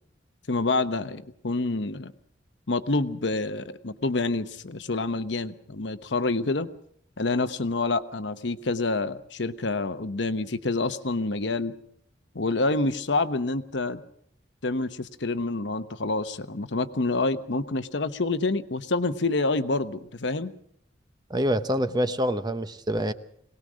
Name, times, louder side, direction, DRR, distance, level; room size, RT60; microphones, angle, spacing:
voice 1, 0.5-2.1 2.7-6.7 7.2-11.7 12.3-14.0 14.6-20.5, left 3 dB, 70° left, 10 dB, 1.0 m, -27 dB
voice 2, 21.3-23.1, equal, 25° right, 11 dB, 0.9 m, -26 dB
22.5 x 19.0 x 6.3 m, 0.68 s
head